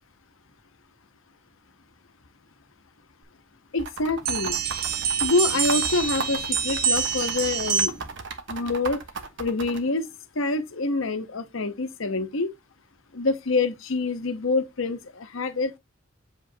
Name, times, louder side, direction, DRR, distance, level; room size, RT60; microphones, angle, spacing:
voice 1, 3.7-4.6 5.2-8.0 8.5-9.0 9.4-10.1 10.3-12.5 13.1-15.8, left 3 dB, 75° left, 1.0 m, -26 dB
sound 1, 3.8-9.8, right 4 dB, 65° right, 1.1 m, -35 dB
sound 2, 4.2-8.2, right 7 dB, 45° right, 0.9 m, -26 dB
7.7 x 5.0 x 2.8 m
head